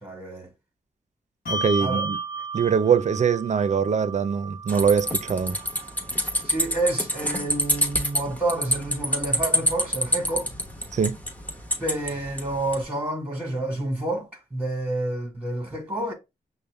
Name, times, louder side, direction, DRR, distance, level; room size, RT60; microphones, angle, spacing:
voice 1, 0.0-0.5 1.8-2.0 6.4-10.5 11.8-16.1, right 2 dB, 10° right, 1.4 m, -29 dB
Bell, 1.5-8.3, right 3 dB, 60° left, 1.0 m, -35 dB
voice 2, 1.5-2.2 2.5-5.6 10.9-11.2, right 6 dB, 45° right, 0.5 m, -22 dB
sound 1, 4.7-12.8, equal, 10° left, 1.0 m, -27 dB
5.3 x 2.1 x 3.3 m
cardioid pair, 45°, 16 cm